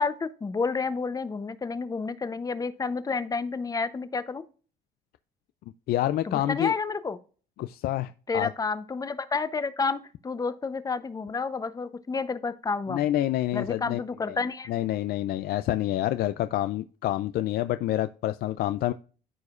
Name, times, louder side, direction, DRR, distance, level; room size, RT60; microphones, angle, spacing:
voice 1, 0.0-4.4 6.2-7.2 8.3-13.1 13.5-14.7, left 4 dB, 20° left, 13 dB, 0.7 m, -30 dB
voice 2, 5.9-6.7 7.6-8.5 12.9-14.0 14.3-14.4 14.7-18.9, left 14 dB, 65° left, 12 dB, 0.4 m, -27 dB
13.5 x 4.9 x 2.4 m, 0.39 s
cardioid pair, 110°, 17 cm